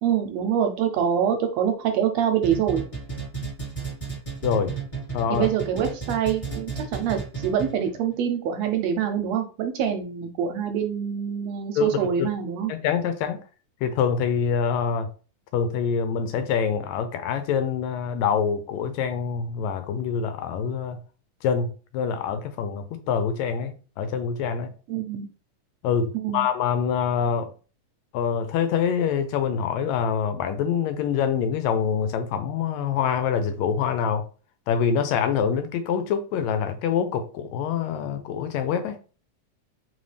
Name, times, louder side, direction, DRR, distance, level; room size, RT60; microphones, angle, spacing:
voice 1, 0.0-2.8 5.3-12.7 24.9-25.3 26.1-26.5, right 8 dB, 75° right, 1.6 m, -25 dB
sound 1, 2.4-7.9, right 5 dB, 10° left, 1.9 m, -33 dB
voice 2, 4.4-4.7 5.1-5.5 11.8-12.3 12.7-13.4 13.8-15.1 15.5-21.0 21.4-24.7 25.8-27.5 28.1-34.2 34.7-39.0, left 7 dB, 80° left, 1.8 m, -25 dB
4.0 x 3.6 x 3.2 m
omnidirectional pair, 3.3 m